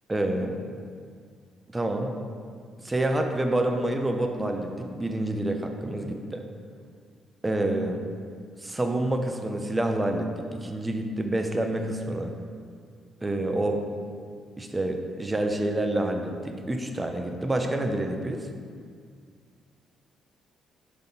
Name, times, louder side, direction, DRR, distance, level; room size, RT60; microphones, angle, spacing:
voice 1, 0.1-0.6 1.7-2.2 2.8-6.4 7.4-8.0 8.6-12.3 13.2-13.8 14.6-18.5, right 1 dB, 15° right, 4 dB, 0.7 m, -28 dB
5.3 x 4.0 x 5.6 m, 2.1 s
cardioid pair, 90°, 0 cm